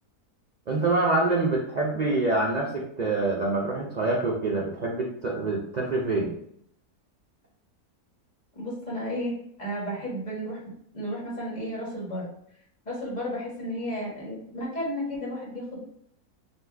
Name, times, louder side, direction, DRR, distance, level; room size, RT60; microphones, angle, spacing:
voice 1, 0.7-6.3, right 2 dB, 70° right, -2 dB, 0.4 m, -26 dB
voice 2, 8.5-10.6 10.9-12.3 12.8-15.8, equal, 30° left, -6 dB, 1.4 m, -33 dB
4.2 x 2.5 x 3.4 m, 0.68 s
omnidirectional pair, 1.7 m